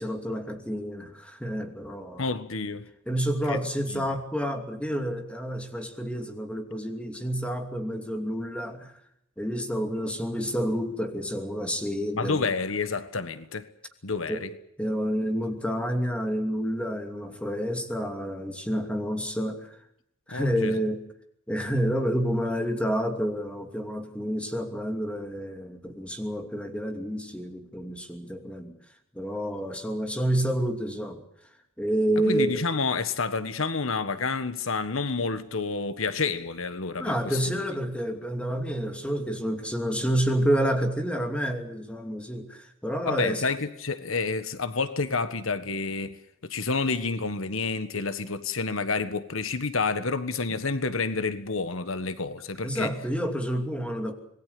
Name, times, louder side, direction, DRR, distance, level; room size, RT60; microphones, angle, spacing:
voice 1, 0.0-2.2 3.1-8.9 9.4-12.5 14.3-14.5 14.8-19.8 20.3-21.0 21.5-28.8 29.1-31.2 31.8-32.6 37.0-43.4 50.5-50.6 52.6-54.1, equal, 5° left, 2.7 m, -29 dB
voice 2, 2.2-2.9 3.5-3.6 3.9-4.0 12.2-13.7 14.0-14.5 20.3-20.7 32.2-37.6 43.1-46.1 46.4-52.9, left 4 dB, 85° left, 1.5 m, -29 dB
26.5 x 20.0 x 6.8 m
head